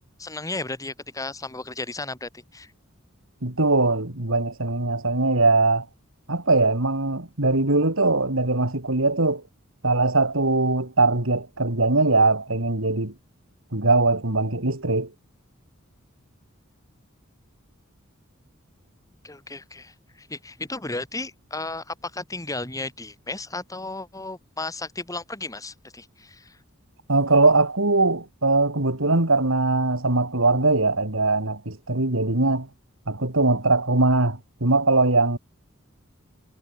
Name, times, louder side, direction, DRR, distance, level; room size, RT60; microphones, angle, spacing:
voice 1, 0.2-2.7 19.2-26.6, left 2 dB, 15° left, 2.4 m, -34 dB
voice 2, 3.4-5.8 6.3-9.4 9.8-13.1 13.7-15.1 27.1-32.7 33.1-35.4, right 2 dB, 75° right, 3.3 m, -21 dB
head